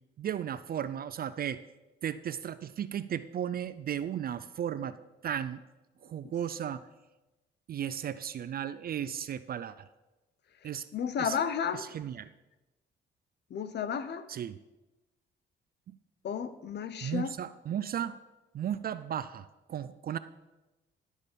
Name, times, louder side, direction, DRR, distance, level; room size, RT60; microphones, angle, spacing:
voice 1, 0.2-1.6 2.0-5.0 5.2-5.6 6.0-6.8 7.7-9.9 10.6-10.9 11.2-11.4 11.7-12.3 14.3-14.6 17.0-18.2 18.5-20.2, right 9 dB, 50° right, 14 dB, 0.4 m, -35 dB
voice 2, 10.9-11.8 13.5-14.2 16.2-17.3, left 7 dB, 60° left, 13 dB, 0.8 m, -32 dB
11.0 x 6.4 x 5.2 m, 1.1 s
cardioid pair, 90°, 20 cm